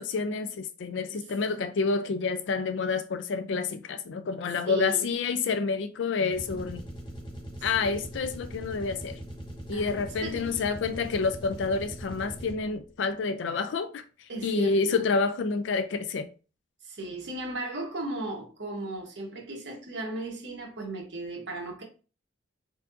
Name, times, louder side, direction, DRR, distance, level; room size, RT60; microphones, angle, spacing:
voice 1, 0.0-6.8 7.6-9.2 9.7-14.0 14.4-16.3, left 4 dB, 70° left, 0.4 m, -28 dB
voice 2, 4.6-5.0 7.6-8.1 9.7-10.6 14.3-15.0 16.8-21.8, right 2 dB, 65° right, 1.1 m, -36 dB
sound 1, 6.3-12.8, equal, 25° left, 0.9 m, -41 dB
4.4 x 2.8 x 2.5 m
head